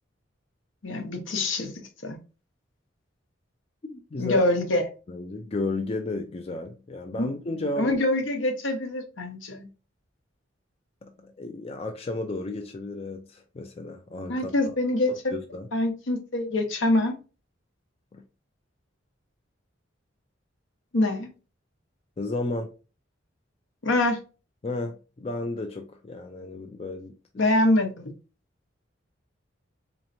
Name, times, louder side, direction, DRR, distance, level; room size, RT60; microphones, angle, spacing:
voice 1, 0.8-1.7 2.0-2.2 4.2-4.8 7.2-7.3 7.8-9.7 14.3-15.3 15.7-17.1 20.9-21.3 23.8-24.2 27.4-28.1, left 1 dB, 75° left, 0.9 m, -25 dB
voice 2, 3.8-4.4 5.1-8.0 11.0-14.7 15.3-15.7 18.1-18.2 22.2-22.7 24.6-27.4, left 2 dB, 30° left, 0.4 m, -33 dB
4.1 x 3.1 x 2.6 m
head